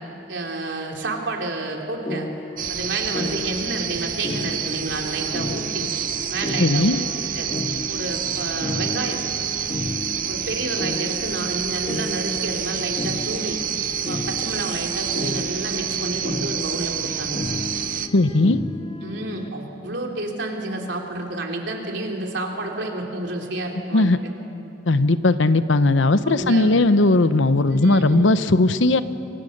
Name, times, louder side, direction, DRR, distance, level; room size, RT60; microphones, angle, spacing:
voice 1, 0.3-2.3 2.7-5.9 6.3-6.9 7.3-7.5 7.9-9.2 10.3-13.6 14.1-17.4 19.0-24.1 26.2-26.8 27.7-28.3, right 2 dB, 70° right, 0 dB, 3.6 m, -30 dB
sound 1, 2.1-19.5, left 2 dB, 25° left, 0.7 m, -33 dB
sound 2, 2.6-18.1, right 9 dB, 45° right, 0.9 m, -28 dB
voice 2, 6.6-7.0 18.1-18.6 23.9-24.2 24.9-29.0, left 2 dB, 80° left, 12 dB, 0.9 m, -18 dB
29.0 x 24.5 x 6.7 m, 2.9 s
head